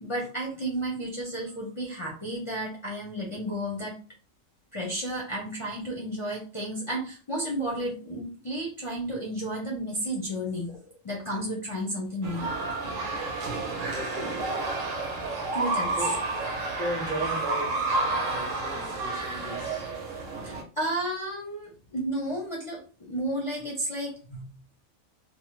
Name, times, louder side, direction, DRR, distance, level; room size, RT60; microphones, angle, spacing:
voice 1, 0.0-4.0 4.7-10.8 11.0-12.5 15.5-15.9 20.4-24.5, right 1 dB, 35° left, 0.5 m, -32 dB
sound 1, 12.2-20.6, right 2 dB, 80° right, 1.2 m, -30 dB
voice 2, 13.8-14.5 15.9-16.2 16.7-19.9, right 1 dB, 30° right, 1.0 m, -37 dB
3.0 x 2.1 x 3.0 m
omnidirectional pair, 1.3 m